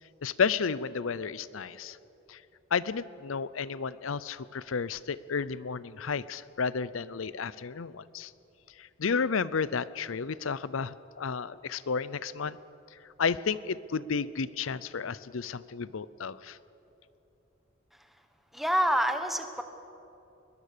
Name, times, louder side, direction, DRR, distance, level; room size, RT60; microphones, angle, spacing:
voice 1, 0.2-2.0 2.3-2.4 2.7-8.3 8.8-12.6 13.2-16.6, left 5 dB, 85° left, 18 dB, 0.6 m, -32 dB
voice 2, 18.5-19.6, right 1 dB, ahead, 7 dB, 1.1 m, -27 dB
21.5 x 20.5 x 6.8 m, 2.9 s
head